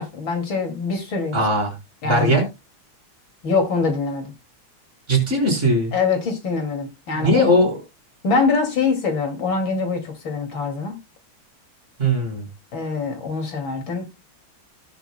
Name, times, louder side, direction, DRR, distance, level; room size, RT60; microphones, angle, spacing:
voice 1, 0.0-1.4 2.0-2.4 3.4-4.3 5.9-7.6 8.2-11.0 12.7-14.0, left 4 dB, 70° left, 3.2 m, -24 dB
voice 2, 1.3-1.7 2.0-2.5 5.1-5.9 7.1-7.8 12.0-12.5, equal, 35° right, 4.4 m, -19 dB
18.5 x 6.8 x 2.2 m
omnidirectional pair, 2.3 m